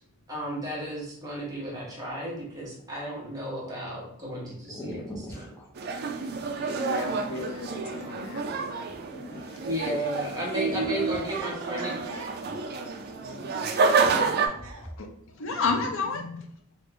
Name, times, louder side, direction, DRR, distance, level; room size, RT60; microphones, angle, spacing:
voice 1, 0.3-5.5 9.6-11.9, right 1 dB, 15° right, -5 dB, 1.1 m, -34 dB
sound 1, 3.2-3.7 4.3-4.4 4.7-10.0 10.5-12.9 13.2-13.7 14.0-15.0, equal, 10° left, 0.5 m, -43 dB
sound 2, 5.8-14.5, right 4 dB, 50° right, 0.4 m, -29 dB
voice 2, 6.3-8.9 15.0-15.1 15.4-16.4, left 4 dB, 65° left, 4 dB, 0.5 m, -32 dB
voice 3, 11.4-15.0, right 2 dB, 80° right, 0 dB, 0.8 m, -44 dB
3.0 x 2.5 x 3.2 m, 0.69 s
head